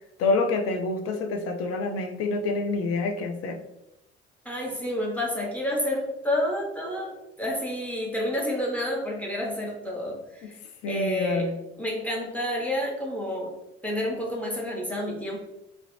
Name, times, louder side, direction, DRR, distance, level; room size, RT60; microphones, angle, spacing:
voice 1, 0.2-3.6 10.4-10.5 10.8-11.6, left 3 dB, 45° left, 5 dB, 0.5 m, -27 dB
voice 2, 4.4-10.5 10.9-11.5 11.8-13.5 13.8-15.4, left 1 dB, 5° left, -2 dB, 0.8 m, -29 dB
2.4 x 2.1 x 2.9 m, 0.88 s
figure-of-eight pair, 55°, 32 cm